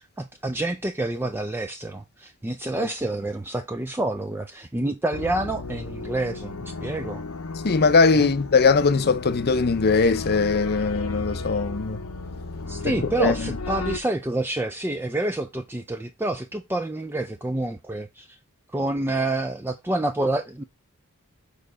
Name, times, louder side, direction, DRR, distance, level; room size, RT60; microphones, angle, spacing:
voice 1, 0.0-7.2 8.1-8.3 12.7-18.4 18.7-20.6, right 2 dB, 10° right, 0.4 m, -28 dB
sound 1, 5.1-14.0, left 3 dB, 75° left, 0.9 m, -34 dB
voice 2, 7.6-12.0 12.8-12.9 13.2-13.3, left 4 dB, 45° left, 0.7 m, -20 dB
6.7 x 4.0 x 5.1 m
head